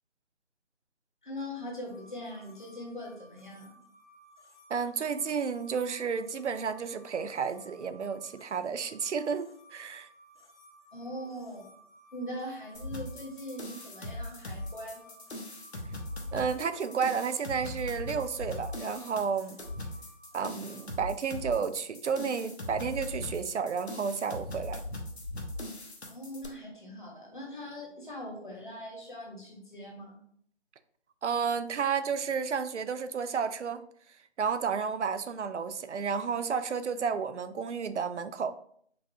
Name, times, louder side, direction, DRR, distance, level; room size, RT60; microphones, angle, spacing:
voice 1, 1.2-3.7 10.9-11.7 12.1-15.2 26.1-30.2, equal, 45° left, -1 dB, 1.3 m, -41 dB
sound 1, 1.8-20.9, equal, 85° left, 1.3 m, -58 dB
voice 2, 4.7-10.1 16.3-19.6 20.3-24.8 31.2-33.8 34.4-38.5, right 6 dB, 90° right, 11 dB, 0.5 m, -31 dB
sound 2, 12.7-26.5, left 1 dB, 70° left, 1.0 m, -40 dB
5.1 x 2.3 x 2.8 m, 0.63 s
figure-of-eight pair, 170°, 34 cm